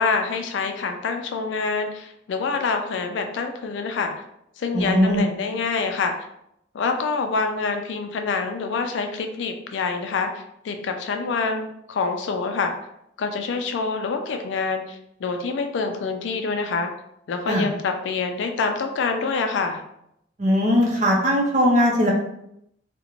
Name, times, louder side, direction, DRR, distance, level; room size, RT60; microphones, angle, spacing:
voice 1, 0.0-4.1 4.6-6.3 6.7-12.7 13.2-16.9 17.3-19.8, left 4 dB, 75° left, 5 dB, 0.3 m, -26 dB
voice 2, 4.7-5.2 17.5-17.7 20.4-22.1, equal, 40° right, -2 dB, 0.5 m, -19 dB
2.4 x 2.1 x 3.0 m, 0.78 s
head